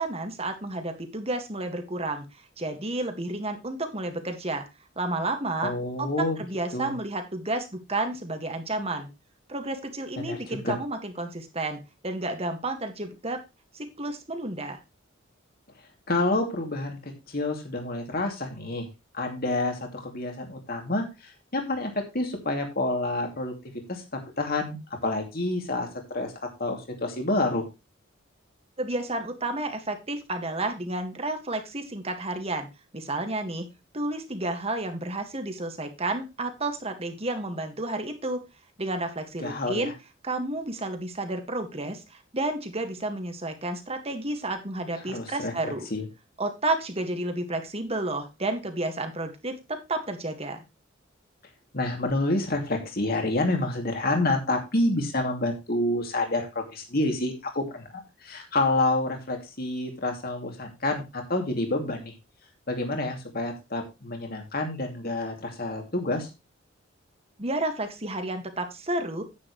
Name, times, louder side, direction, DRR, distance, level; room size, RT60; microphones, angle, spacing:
voice 1, 0.0-2.3 2.6-4.7 5.0-5.7 6.0-9.1 9.5-13.4 13.7-14.8 28.8-32.7 32.9-33.7 33.9-38.4 38.8-39.9 40.2-45.9 46.4-50.6 67.4-69.2, right 2 dB, 30° right, 6 dB, 1.8 m, -31 dB
voice 2, 5.6-6.4 6.7-6.9 10.2-10.8 16.1-18.9 19.1-21.1 21.5-23.5 23.9-24.0 24.4-24.8 25.0-25.9 26.1-26.3 26.6-27.6 39.4-39.9 45.1-46.1 51.7-57.8 58.2-62.1 62.7-66.3, left 2 dB, 50° left, 3 dB, 2.6 m, -28 dB
9.8 x 9.3 x 3.1 m, 0.25 s
head